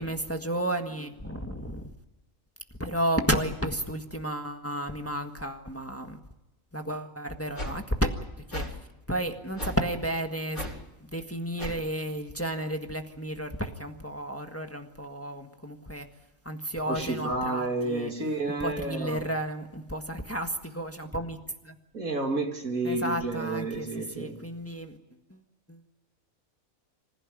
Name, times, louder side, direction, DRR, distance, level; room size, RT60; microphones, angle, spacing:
voice 1, 0.0-1.8 2.8-6.2 6.7-8.1 8.5-8.8 9.1-10.7 11.0-16.1 16.4-18.1 18.6-21.7 22.8-23.9 24.1-25.0 25.3-25.4 25.7-25.9, right 1 dB, 10° left, 5 dB, 1.5 m, -32 dB
sound 1, 7.6-7.8 8.5-8.7 9.6-9.8 10.5-10.8 11.6-11.8, equal, 90° left, 5.7 m, -35 dB
voice 2, 16.9-19.2 21.9-24.4, right 2 dB, 85° right, 3 dB, 3.1 m, -30 dB
26.0 x 15.5 x 9.5 m, 0.97 s
omnidirectional pair, 1.4 m